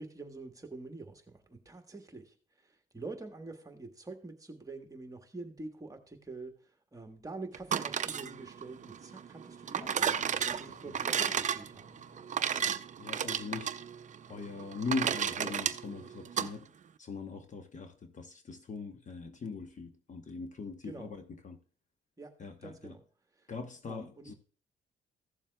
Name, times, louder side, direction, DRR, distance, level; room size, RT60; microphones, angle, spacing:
voice 1, 0.0-2.3 2.9-6.5 6.9-12.0 20.8-21.1 22.2-22.3 22.6-23.0 23.9-24.3, right 3 dB, 15° right, 1.3 m, -46 dB
sound 1, 7.5-16.5, right 8 dB, 40° right, 0.5 m, -33 dB
sound 2, 9.8-15.8, left 5 dB, 85° left, 2.3 m, -59 dB
voice 2, 12.6-13.8 14.3-16.7 17.0-21.6 22.4-23.0 23.5-24.3, left 4 dB, 40° left, 1.0 m, -41 dB
15.0 x 7.2 x 2.3 m
cardioid pair, 90°, 20 cm